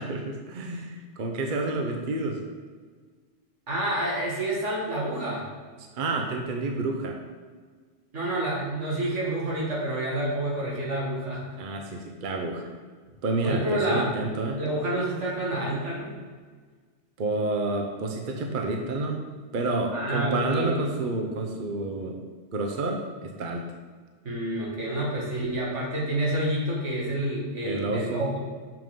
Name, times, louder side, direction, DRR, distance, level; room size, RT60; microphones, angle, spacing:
voice 1, 0.0-2.4 5.9-7.2 11.6-12.8 13.2-14.6 17.2-19.2 19.5-22.2 22.5-23.6 27.6-28.2, right 2 dB, 50° right, 3 dB, 0.8 m, -29 dB
voice 2, 3.7-5.4 8.1-11.5 13.4-14.1 14.6-16.2 19.9-20.8 24.2-28.4, right 1 dB, 75° right, -4 dB, 2.1 m, -28 dB
7.1 x 5.9 x 3.7 m, 1.5 s
omnidirectional pair, 1.2 m